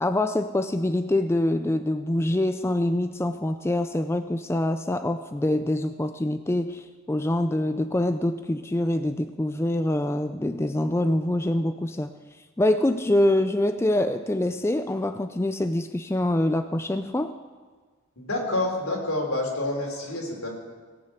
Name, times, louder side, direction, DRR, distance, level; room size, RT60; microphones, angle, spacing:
voice 1, 0.0-12.1 12.6-17.3, left 1 dB, 10° left, 9 dB, 0.3 m, -25 dB
voice 2, 18.2-20.5, left 2 dB, 80° left, 0 dB, 3.5 m, -28 dB
18.0 x 6.6 x 8.2 m, 1.5 s
head